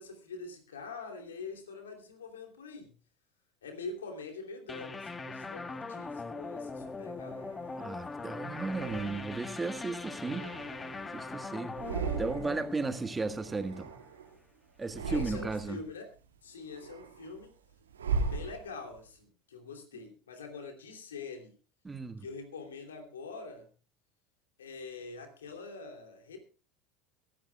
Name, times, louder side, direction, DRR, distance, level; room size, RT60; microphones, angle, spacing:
voice 1, 0.0-2.9 3.6-7.5 15.1-16.1 16.4-17.5 18.2-21.6 22.2-23.7 24.6-26.4, left 4 dB, 85° left, 2.9 m, -44 dB
sound 1, 4.7-14.0, left 3 dB, 20° left, 1.4 m, -41 dB
sound 2, 6.7-8.0 8.6-9.6 10.1-11.3 11.6-12.7 13.0-14.4 14.8-15.8 16.3-19.0, right 4 dB, 85° right, 2.2 m, -38 dB
voice 2, 7.8-10.5 11.1-11.7 12.2-13.9 14.8-15.8 21.8-22.2, right 3 dB, 15° right, 1.6 m, -35 dB
22.5 x 12.0 x 2.3 m
hypercardioid pair, 75°, 0 cm